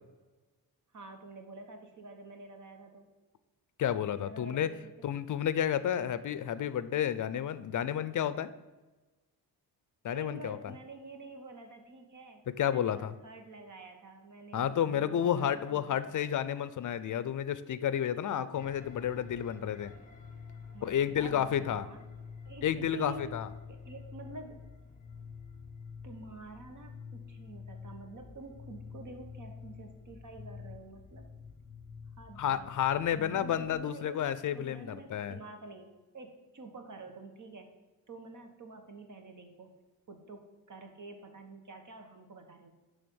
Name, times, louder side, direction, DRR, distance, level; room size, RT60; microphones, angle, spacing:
voice 1, 0.9-3.1 4.2-5.1 10.1-16.0 20.7-22.1 22.4-23.3 23.7-24.6 26.0-31.2 32.2-32.7 33.1-34.3 34.5-35.9 36.1-37.7 38.1-39.7 40.1-40.4 40.7-42.7, right 3 dB, 50° right, 5 dB, 1.3 m, -48 dB
voice 2, 3.8-4.7 5.0-8.5 10.0-10.7 12.5-13.1 14.5-19.9 20.8-21.9 22.6-23.5 32.4-35.4, left 9 dB, 55° left, 14 dB, 0.5 m, -31 dB
sound 1, 18.6-33.8, left 5 dB, 20° left, 1.2 m, -49 dB
10.5 x 3.5 x 7.0 m, 1.2 s
wide cardioid pair, 145°, 38 cm